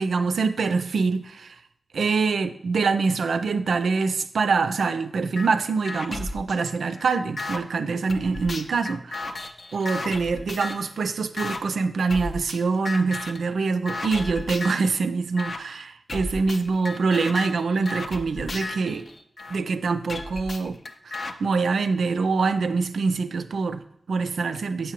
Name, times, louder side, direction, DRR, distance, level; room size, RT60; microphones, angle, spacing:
voice 1, 0.0-1.6 1.9-9.4 9.7-19.1 19.5-20.8 21.1-24.9, right 4 dB, 80° right, 10 dB, 0.3 m, -25 dB
sound 1, 5.4-5.5 5.9-7.6 8.1-10.9 11.4-11.6 12.1-12.6 12.9-13.4 13.9-14.9 15.4-15.6 16.1-19.6 20.1-21.3, left 2 dB, 60° left, 0.5 m, -34 dB
7.4 x 4.8 x 2.9 m, 0.70 s
cardioid pair, 45°, 0 cm